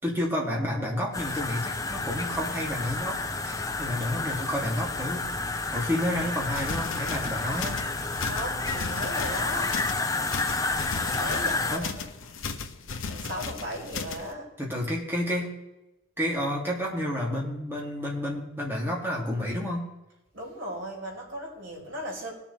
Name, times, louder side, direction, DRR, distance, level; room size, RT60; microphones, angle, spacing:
voice 1, 0.0-5.3 5.7-7.8 11.7-11.9 14.6-15.6 16.2-19.8, left 1 dB, 10° right, -3 dB, 3.1 m, -30 dB
sound 1, 1.1-11.8, left 3 dB, 15° left, 0.7 m, -30 dB
sound 2, 6.3-14.3, left 4 dB, 75° left, 1.3 m, -37 dB
voice 2, 8.2-9.8 11.0-12.0 13.1-14.5 20.3-22.3, equal, 60° right, -4 dB, 5.2 m, -37 dB
21.0 x 7.1 x 3.6 m, 0.95 s
head